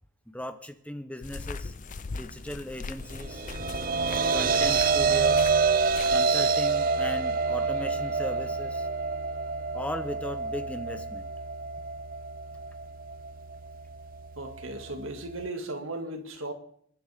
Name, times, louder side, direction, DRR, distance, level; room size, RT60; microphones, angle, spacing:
voice 1, 0.3-1.7 2.1-3.5 4.3-5.5 6.1-8.9 9.7-11.3, left 1 dB, 5° left, 0.8 m, -37 dB
sound 1, 1.2-6.2, left 4 dB, 40° left, 0.5 m, -39 dB
sound 2, 3.1-15.5, right 4 dB, 45° right, 0.5 m, -28 dB
voice 2, 14.4-16.5, right 2 dB, 90° right, 2.2 m, -36 dB
27.5 x 11.0 x 3.6 m
head